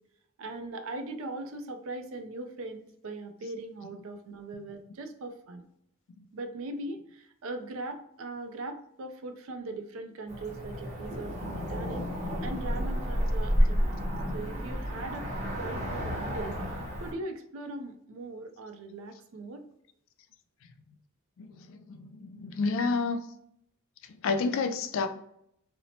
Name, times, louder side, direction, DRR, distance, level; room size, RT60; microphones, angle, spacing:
voice 1, 0.4-5.7 6.3-12.1 12.4-14.0 14.3-15.3 15.6-16.6 17.0-19.6, right 2 dB, 65° right, 6 dB, 0.4 m, -40 dB
Cricket / Motor vehicle (road), 10.3-17.1, equal, 35° right, 0.8 m, -30 dB
voice 2, 21.4-23.2 24.2-25.1, left 4 dB, 60° left, 7 dB, 0.3 m, -30 dB
2.8 x 2.0 x 2.6 m, 0.73 s
head